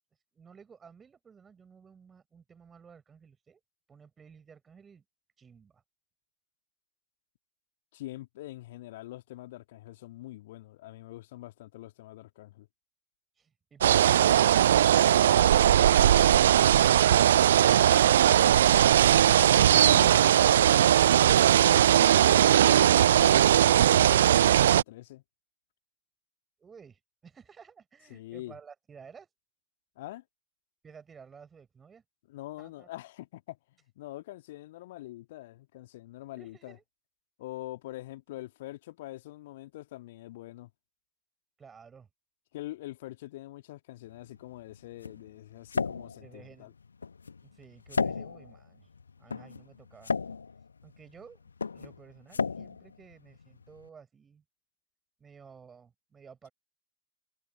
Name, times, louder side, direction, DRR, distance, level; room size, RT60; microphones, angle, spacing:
voice 1, 0.3-3.6 3.9-5.0 5.4-5.8 13.4-15.0 26.6-29.3 30.8-32.0 32.6-32.9 36.4-36.8 41.6-42.1 46.2-46.7 47.4-48.9 49.2-50.2 50.8-54.4 55.2-56.5, right 6 dB, 20° right, 5.6 m, -54 dB
voice 2, 7.9-12.7 19.4-21.4 21.7-25.2 28.1-28.5 30.0-30.2 32.3-33.6 34.0-36.8 37.4-40.7 42.5-46.7, left 16 dB, 55° left, 2.2 m, -44 dB
sound 1, 13.8-24.8, right 11 dB, 60° right, 0.3 m, -20 dB
sound 2, 44.1-53.9, left 5 dB, 75° left, 1.5 m, -36 dB
figure-of-eight pair, 90°, 0 cm